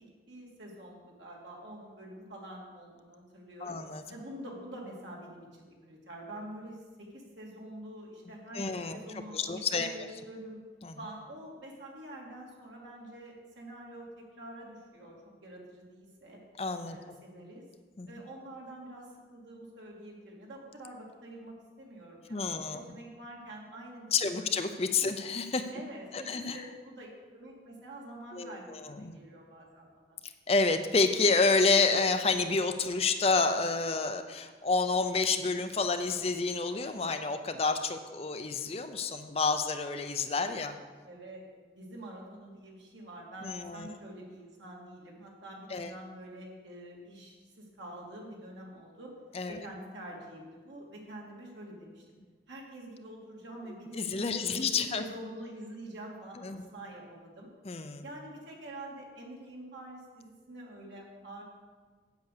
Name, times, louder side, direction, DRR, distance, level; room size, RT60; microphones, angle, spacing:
voice 1, 0.0-3.8 4.1-10.6 11.0-16.4 16.8-17.6 18.1-24.5 25.0-25.1 25.7-30.2 41.0-41.5 41.7-49.1 49.5-52.2 52.5-54.7 54.9-57.5 58.0-61.4, right 1 dB, 80° right, -2 dB, 2.6 m, -46 dB
voice 2, 3.6-4.0 8.5-9.0 9.3-9.9 10.8-10.9 16.6-17.0 18.0-18.1 22.3-22.8 24.1-25.7 26.1-26.6 28.3-29.1 30.5-40.8 43.4-44.0 45.7-45.9 49.3-49.6 53.9-55.0 56.4-56.6 57.6-58.0, left 4 dB, 30° left, 8 dB, 0.5 m, -29 dB
8.2 x 8.0 x 6.6 m, 1.5 s
head